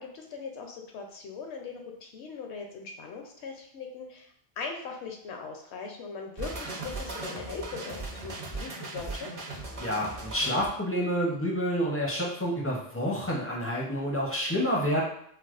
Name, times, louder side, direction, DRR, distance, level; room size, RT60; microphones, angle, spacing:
voice 1, 0.0-9.3, left 5 dB, 70° left, 2 dB, 0.8 m, -40 dB
sound 1, 6.4-10.7, right 3 dB, 40° right, 0.6 m, -38 dB
voice 2, 9.8-15.0, equal, 20° left, -4 dB, 0.4 m, -28 dB
4.6 x 2.0 x 2.4 m, 0.69 s
omnidirectional pair, 1.2 m